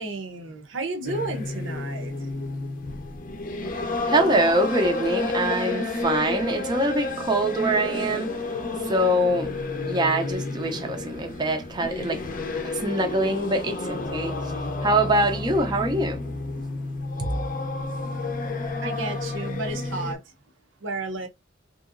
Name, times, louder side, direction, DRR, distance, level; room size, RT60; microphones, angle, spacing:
voice 1, 0.0-2.1 18.8-20.2 20.8-21.3, right 3 dB, 75° right, 0.7 m, -32 dB
sound 1, 1.0-20.1, left 3 dB, 45° left, 0.5 m, -31 dB
voice 2, 4.0-8.3 8.8-9.5 9.9-12.2 12.5-14.4 14.8-16.2 17.2-17.3, right 1 dB, 20° right, 0.4 m, -24 dB
2.9 x 2.7 x 2.5 m
head